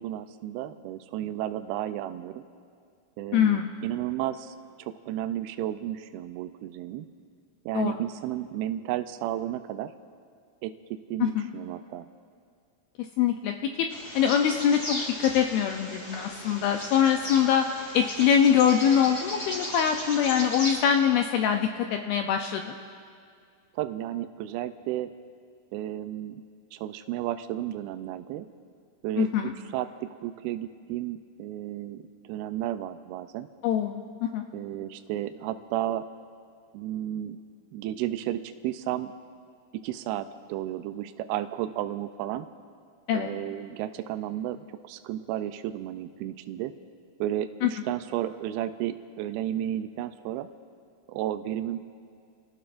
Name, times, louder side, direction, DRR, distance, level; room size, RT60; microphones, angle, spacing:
voice 1, 0.0-2.5 3.2-7.1 7.7-9.9 10.6-12.1 23.7-25.1 25.7-26.4 26.7-28.5 29.0-33.5 34.5-36.1 36.7-37.4 37.7-39.1 39.8-42.5 43.1-46.7 47.2-50.5 51.1-51.8, right 12 dB, 85° right, 9 dB, 2.2 m, -33 dB
voice 2, 3.3-3.7 7.7-8.0 11.2-11.5 13.2-13.9 14.2-17.7 17.9-22.7 29.2-29.5 33.6-34.0 34.3-34.4 43.1-43.3 47.6-47.7, left 8 dB, 85° left, 4 dB, 2.2 m, -23 dB
Bird vocalization bird call bird song, 13.9-20.8, left 1 dB, 25° left, 1.6 m, -36 dB
28.5 x 17.0 x 2.5 m, 2.2 s
omnidirectional pair, 5.0 m